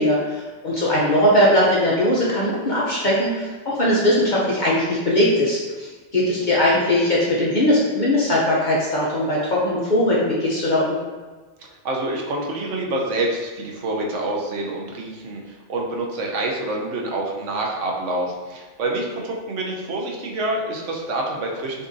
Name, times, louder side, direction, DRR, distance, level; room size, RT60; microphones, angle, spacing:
voice 1, 0.0-11.0, left 1 dB, 45° left, -6 dB, 0.8 m, -20 dB
voice 2, 6.4-6.8 11.6-21.9, right 2 dB, 85° right, -1 dB, 1.1 m, -27 dB
6.3 x 2.6 x 2.6 m, 1.4 s
omnidirectional pair, 1.2 m